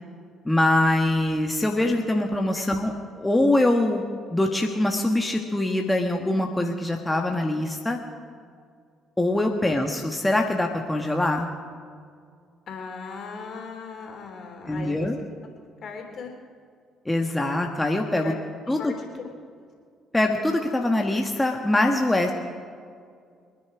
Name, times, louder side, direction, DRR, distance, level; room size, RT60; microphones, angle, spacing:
voice 1, 0.4-4.0 4.3-8.0 9.2-11.5 14.7-15.2 17.0-18.3 18.7-18.9 20.1-22.3, left 1 dB, 10° left, 2 dB, 1.6 m, -23 dB
voice 2, 12.7-15.1 15.8-16.3 18.2-18.3 18.7-19.3, left 5 dB, 55° left, 2 dB, 3.4 m, -38 dB
25.0 x 9.8 x 4.9 m, 2.1 s
hypercardioid pair, 50°, 0 cm